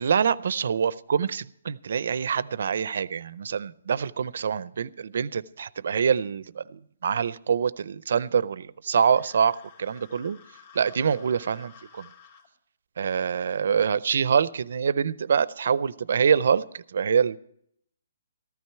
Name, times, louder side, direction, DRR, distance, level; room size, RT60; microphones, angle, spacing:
voice 1, 0.0-10.4 10.7-12.1 13.0-17.4, right 7 dB, 55° right, 20 dB, 0.5 m, -25 dB
sound 1, 8.9-12.5, left 7 dB, 35° left, 2.1 m, -52 dB
14.5 x 12.5 x 4.5 m, 0.70 s
hypercardioid pair, 175°, 0 cm